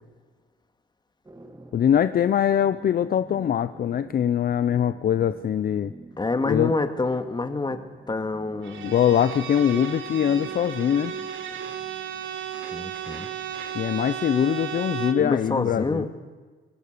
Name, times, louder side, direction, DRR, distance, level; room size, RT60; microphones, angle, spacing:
sound 1, 1.2-15.5, right 2 dB, 15° right, 2.2 m, -48 dB
voice 1, 1.7-5.9 6.5-6.7 8.8-11.1 13.7-16.1, left 9 dB, 50° left, 13 dB, 0.6 m, -22 dB
voice 2, 6.2-8.9 12.7-13.3 15.1-16.1, left 3 dB, 20° left, 8 dB, 2.0 m, -27 dB
Bowed string instrument, 8.6-15.3, right 8 dB, 75° right, 1.8 m, -34 dB
23.5 x 19.0 x 6.8 m, 1.4 s
cardioid pair, 90°, 20 cm